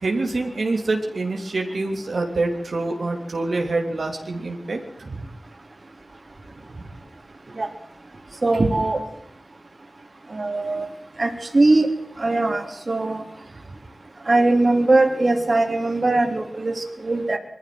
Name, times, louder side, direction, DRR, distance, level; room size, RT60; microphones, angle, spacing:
voice 1, 0.0-5.2, right 2 dB, 80° right, 2 dB, 3.3 m, -26 dB
voice 2, 8.4-9.0 10.3-10.9 11.2-11.9 12.2-13.2 14.3-17.4, right 2 dB, 50° right, 4 dB, 3.5 m, -20 dB
22.5 x 14.5 x 7.9 m, 0.81 s
wide cardioid pair, 70°, 0 cm